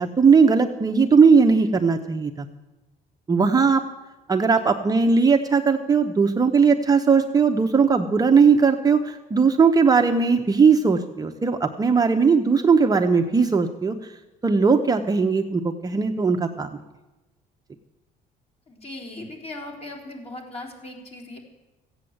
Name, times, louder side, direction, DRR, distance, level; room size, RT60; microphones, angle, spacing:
voice 1, 0.0-2.5 3.3-3.8 4.3-14.0 14.4-16.7, right 5 dB, 20° right, 4 dB, 0.8 m, -18 dB
voice 2, 18.7-21.4, left 2 dB, 35° left, 2 dB, 3.7 m, -38 dB
15.5 x 8.7 x 7.9 m, 1.1 s
cardioid pair, 110°, 17 cm